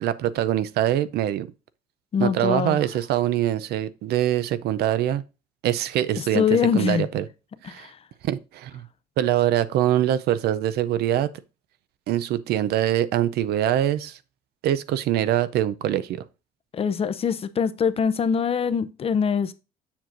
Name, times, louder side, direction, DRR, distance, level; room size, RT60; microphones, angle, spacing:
voice 1, 0.0-1.5 2.2-5.2 5.6-6.5 6.7-7.2 7.6-7.9 8.2-8.9 9.2-11.3 12.1-14.2 14.6-16.2, right 12 dB, 70° right, 0.5 m, -23 dB
voice 2, 2.1-2.8 6.2-7.1 7.6-8.0 16.7-19.5, left 7 dB, 35° left, 0.6 m, -23 dB
7.2 x 6.0 x 2.6 m
cardioid pair, 110°, 17 cm